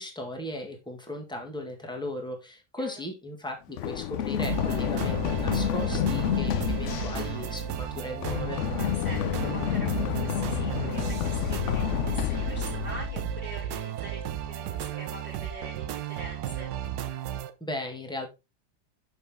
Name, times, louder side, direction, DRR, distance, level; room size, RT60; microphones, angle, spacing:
voice 1, 0.0-8.6 17.6-18.3, left 1 dB, 5° left, 2 dB, 1.4 m, -37 dB
Run, 3.8-13.5, left 11 dB, 65° left, 0.7 m, -29 dB
sound 1, 4.4-17.5, right 10 dB, 85° right, 1.3 m, -34 dB
voice 2, 8.7-16.7, right 2 dB, 25° right, -2 dB, 1.6 m, -44 dB
6.8 x 5.5 x 3.5 m, 0.26 s
omnidirectional pair, 1.7 m